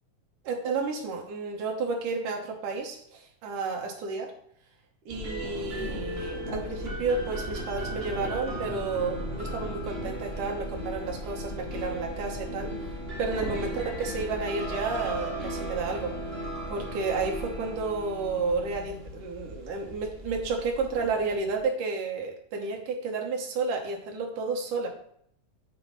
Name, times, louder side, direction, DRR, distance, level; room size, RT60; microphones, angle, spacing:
voice 1, 0.4-4.3 5.1-12.7 13.2-16.1 16.7-24.9, right 4 dB, 75° right, 1 dB, 2.6 m, -31 dB
sound 1, 5.1-21.6, equal, 60° right, 0.6 m, -36 dB
9.0 x 3.6 x 5.2 m, 0.65 s
omnidirectional pair, 3.7 m